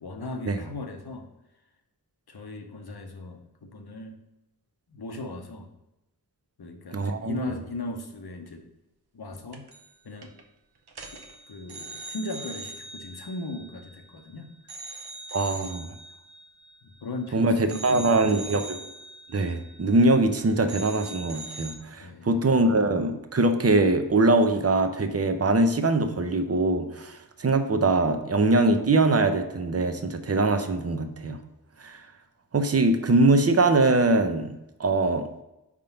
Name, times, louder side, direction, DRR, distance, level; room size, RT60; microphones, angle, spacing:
voice 1, 0.0-1.3 2.3-4.2 4.9-5.7 6.6-8.6 9.1-9.7 10.0-10.3 11.1-11.2 11.5-14.5 15.5-15.6 16.8-18.5 21.9-22.4, left 2 dB, 70° left, 4 dB, 0.9 m, -37 dB
voice 2, 6.9-7.4 15.3-15.9 17.3-18.8 19.3-31.4 31.8-32.0 32.5-34.5 34.8-35.3, right 2 dB, 40° right, 7 dB, 0.7 m, -22 dB
sound 1, 9.5-10.0 10.2-10.4 10.9-14.2 14.7-17.3 17.7-20.4 20.7-21.8, right 2 dB, 75° right, 0.8 m, -42 dB
5.1 x 3.7 x 5.7 m, 0.91 s
wide cardioid pair, 65°, 39 cm